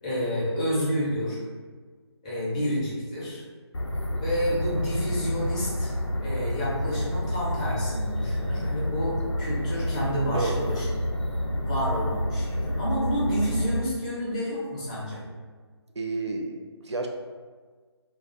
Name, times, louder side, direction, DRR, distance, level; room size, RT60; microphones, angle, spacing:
voice 1, 0.0-1.4 2.2-3.4 4.2-5.9 6.2-10.8 11.6-15.2, equal, 15° left, -8 dB, 0.5 m, -29 dB
sound 1, 3.7-13.8, equal, 85° left, 0.4 m, -29 dB
voice 2, 16.0-17.1, right 3 dB, 80° right, 2 dB, 0.4 m, -31 dB
2.4 x 2.2 x 2.5 m, 1.5 s
figure-of-eight pair, 155°, 14 cm